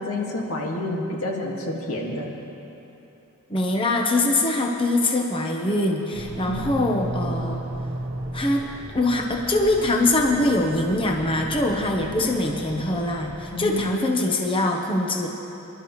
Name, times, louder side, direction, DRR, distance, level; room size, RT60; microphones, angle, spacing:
voice 1, 0.0-2.3 6.5-6.6 6.9-7.1 13.5-13.9, left 2 dB, 85° left, -2 dB, 2.0 m, -29 dB
voice 2, 3.5-7.7 8.3-8.7 8.9-15.3, left 2 dB, 25° left, 1 dB, 1.0 m, -23 dB
sound 1, 6.1-13.9, right 1 dB, 75° right, 1.0 m, -35 dB
26.0 x 12.0 x 3.2 m, 3.0 s
head